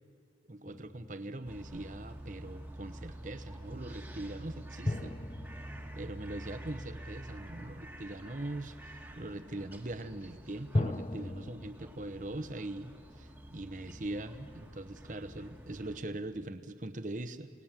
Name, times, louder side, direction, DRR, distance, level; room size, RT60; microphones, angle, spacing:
voice 1, 0.5-5.2 6.0-17.5, right 1 dB, 45° right, 11 dB, 1.0 m, -41 dB
sound 1, 0.7-2.0 4.8-7.4 10.7-11.7, left 1 dB, 30° left, 0.6 m, -37 dB
sound 2, 1.4-16.0, right 1 dB, 10° right, 1.5 m, -48 dB
29.0 x 18.5 x 7.5 m, 2.2 s
head